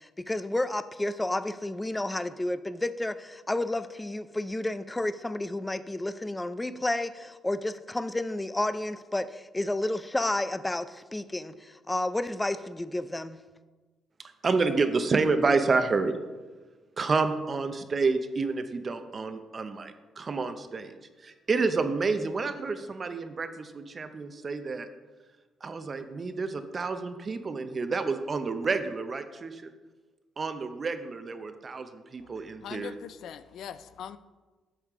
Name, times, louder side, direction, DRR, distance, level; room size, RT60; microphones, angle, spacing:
voice 1, 0.0-13.4, left 1 dB, 15° left, 0.4 m, -31 dB
voice 2, 14.4-16.2 17.0-24.9 25.6-29.7 30.4-32.9, right 4 dB, 40° right, 0.6 m, -29 dB
voice 3, 32.6-34.2, left 8 dB, 75° left, 0.4 m, -41 dB
8.1 x 7.2 x 3.6 m
cardioid pair, 90°, 0 cm